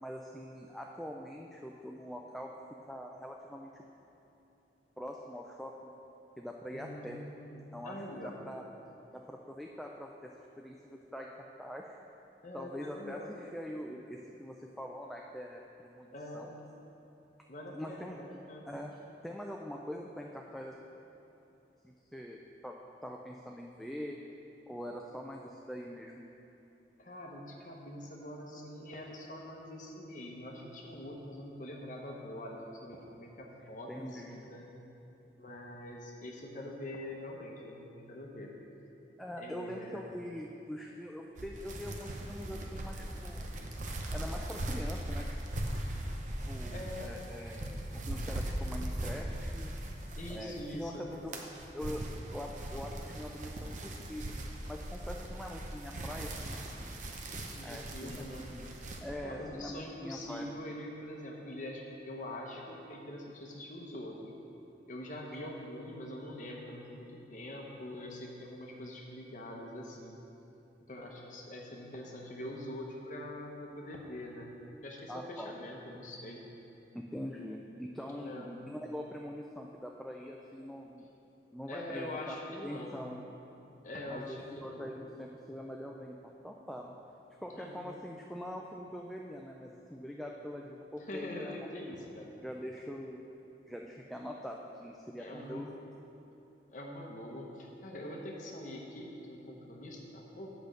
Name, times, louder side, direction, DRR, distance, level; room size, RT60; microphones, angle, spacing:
voice 1, 0.0-2.5 2.9-3.8 5.0-5.9 6.4-7.2 7.7-8.6 9.1-10.3 10.6-11.3 11.6-12.0 12.5-16.1 16.3-16.5 17.7-18.2 18.7-19.0 19.2-20.8 21.8-22.8 23.0-24.2 24.7-26.2 33.9-34.5 39.2-43.6 44.1-45.4 46.5-49.8 50.3-54.3 54.7-56.6 56.8-57.0 57.6-58.7 59.0-60.5 75.1-75.5 76.9-81.1 81.5-83.2 84.1-86.9 87.4-91.6 92.4-93.2 93.7-95.7, equal, ahead, 0 dB, 0.3 m, -43 dB
voice 2, 6.7-8.3 12.4-13.3 16.1-16.5 17.5-18.7 27.0-34.7 35.4-38.5 39.4-40.0 46.6-47.2 50.2-51.0 57.5-58.4 59.2-64.2 64.9-70.2 70.8-76.4 78.0-78.5 81.7-83.0 83.8-84.9 87.5-87.8 91.0-92.3 95.2-95.7 96.7-100.5, left 1 dB, 45° left, -1 dB, 0.8 m, -44 dB
sound 1, 41.4-50.7 51.1-59.0, right 1 dB, 45° right, 0.7 m, -39 dB
8.2 x 5.1 x 6.6 m, 2.9 s
head